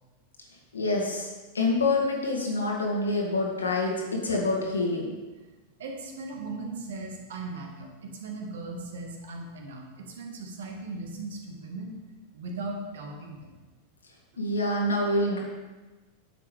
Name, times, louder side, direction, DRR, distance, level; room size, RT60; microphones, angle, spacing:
voice 1, 0.7-3.9 4.2-5.1 14.4-15.4, left 2 dB, 75° left, -1 dB, 1.8 m, -26 dB
voice 2, 5.8-12.0 12.3-13.5 14.3-14.4, right 3 dB, 60° right, 2 dB, 1.6 m, -38 dB
10.0 x 7.5 x 3.4 m, 1.2 s
figure-of-eight pair, 90°, 0 cm